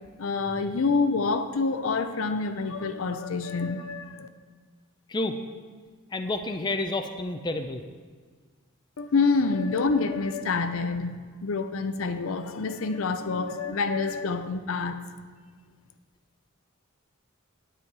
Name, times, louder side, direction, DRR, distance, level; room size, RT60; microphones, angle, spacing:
voice 1, 0.2-4.3 9.0-15.0, left 4 dB, 70° left, 9 dB, 0.6 m, -27 dB
voice 2, 6.1-7.8, left 2 dB, 20° left, 6 dB, 0.5 m, -29 dB
9.7 x 8.9 x 4.7 m, 1.5 s
head